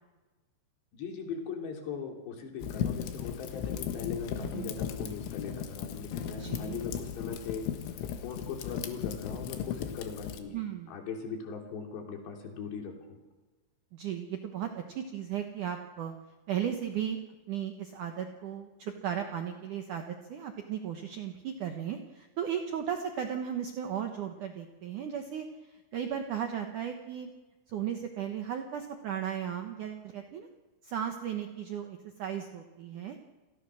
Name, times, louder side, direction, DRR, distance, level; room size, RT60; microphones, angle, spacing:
voice 1, 0.9-7.7 8.2-10.6 10.9-13.2, left 5 dB, 65° left, 3 dB, 5.1 m, -39 dB
Fire, 2.6-10.4, left 9 dB, 90° left, 4.1 m, -36 dB
voice 2, 4.4-4.7 6.4-6.8 10.5-10.9 13.9-16.1 16.5-17.2 17.5-25.5 25.9-27.3 27.7-30.5 30.8-33.2, right 9 dB, 80° right, 5 dB, 1.8 m, -35 dB
29.0 x 19.5 x 6.4 m, 1.2 s
omnidirectional pair, 5.4 m